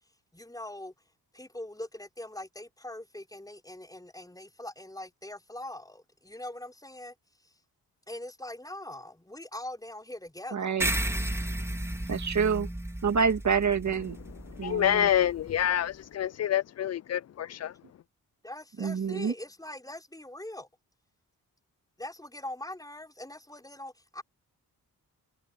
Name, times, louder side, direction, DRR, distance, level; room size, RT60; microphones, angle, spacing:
voice 1, 0.3-0.9 1.3-7.1 7.4-7.5 8.1-10.7 18.4-20.7 22.0-24.2, left 1 dB, 10° left, 5.1 m, -42 dB
voice 2, 10.5-10.9 12.1-12.7 13.0-14.2 14.6-15.1 18.8-19.3, right 6 dB, 50° right, 2.3 m, -27 dB
sound 1, 10.8-15.6, right 1 dB, 5° right, 1.8 m, -34 dB
voice 3, 14.5-17.7, left 10 dB, 45° left, 0.4 m, -27 dB
cardioid pair, 65°, 37 cm